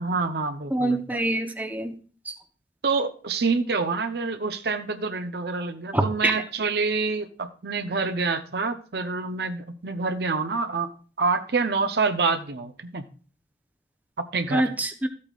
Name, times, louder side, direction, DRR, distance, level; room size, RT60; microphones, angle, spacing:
voice 1, 0.0-1.2 2.8-10.9 11.2-13.1 14.2-14.7, right 4 dB, 65° right, 8 dB, 0.8 m, -27 dB
voice 2, 0.7-1.9 2.3-2.4 5.9-6.3 14.5-15.1, right 1 dB, 10° right, 7 dB, 0.8 m, -25 dB
13.5 x 8.5 x 2.4 m, 0.39 s
head